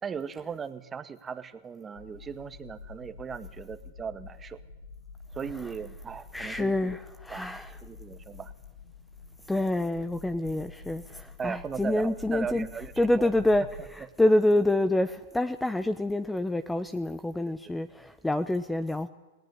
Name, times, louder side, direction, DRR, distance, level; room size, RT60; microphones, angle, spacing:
voice 1, 0.0-4.6 5.3-7.0 7.3-7.4 7.8-8.5 11.4-13.3 17.4-17.5, right 6 dB, 20° right, 10 dB, 1.8 m, -37 dB
sound 1, 1.9-13.9, left 3 dB, 80° left, 4.3 m, -47 dB
voice 2, 6.3-7.7 9.5-12.7 13.0-19.1, left 1 dB, 5° left, 13 dB, 1.0 m, -27 dB
29.0 x 18.5 x 9.7 m, 1.2 s
hypercardioid pair, 110°, 0 cm